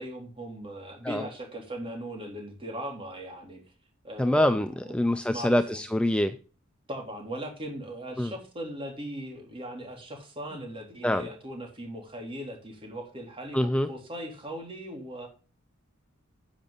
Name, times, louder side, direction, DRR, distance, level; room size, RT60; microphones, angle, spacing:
voice 1, 0.0-3.6 4.0-4.6 4.8-5.0 5.3-5.8 6.9-15.3, right 1 dB, 25° right, 2 dB, 3.5 m, -39 dB
voice 2, 4.2-6.4 8.2-8.3 11.0-11.3 13.5-13.9, left 1 dB, 5° left, 10 dB, 0.5 m, -25 dB
10.5 x 8.9 x 4.0 m, 0.35 s
head